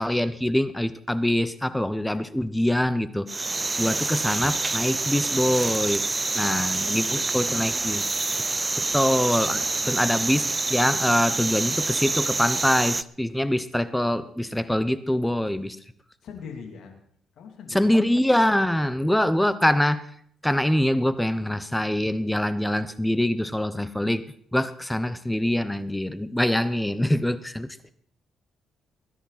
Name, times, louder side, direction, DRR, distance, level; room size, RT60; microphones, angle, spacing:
voice 1, 0.0-3.4 3.8-6.0 6.4-8.0 8.8-15.8 17.7-20.0 20.4-24.2 24.5-27.7, left 1 dB, 5° left, 14 dB, 0.8 m, -24 dB
sound 1, 3.3-13.0, right 3 dB, 20° right, 0.5 m, -27 dB
voice 2, 6.4-7.3 8.5-9.4 9.8-9.9 16.2-17.0 17.4-18.0, left 6 dB, 75° left, 3 dB, 2.9 m, -42 dB
20.0 x 11.0 x 4.2 m, 0.63 s
cardioid pair, 90°, 0 cm